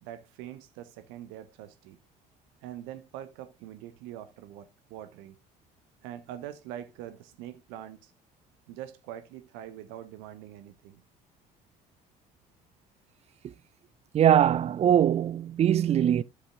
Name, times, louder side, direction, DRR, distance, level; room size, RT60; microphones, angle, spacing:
voice 1, 0.0-2.0 2.6-5.4 6.0-8.1 8.7-11.0, right 11 dB, 65° right, 0.8 m, -43 dB
voice 2, 14.1-16.2, right 10 dB, 30° right, 0.4 m, -22 dB
12.5 x 7.2 x 2.4 m
figure-of-eight pair, 55°, 21 cm